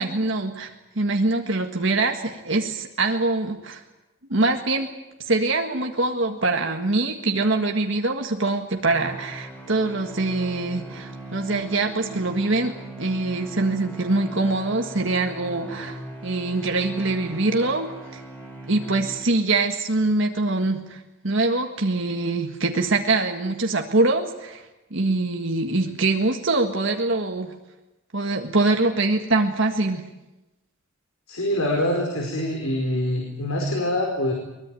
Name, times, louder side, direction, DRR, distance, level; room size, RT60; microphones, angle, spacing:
voice 1, 0.0-3.8 4.3-4.9 5.2-18.2 18.7-24.6 24.9-27.5 28.1-30.0, right 2 dB, 60° right, 3 dB, 1.8 m, -24 dB
sound 1, 8.8-19.6, right 1 dB, 5° left, 3.6 m, -39 dB
voice 2, 31.3-34.3, left 1 dB, 80° left, 1 dB, 4.8 m, -25 dB
23.0 x 21.5 x 9.2 m, 0.99 s
head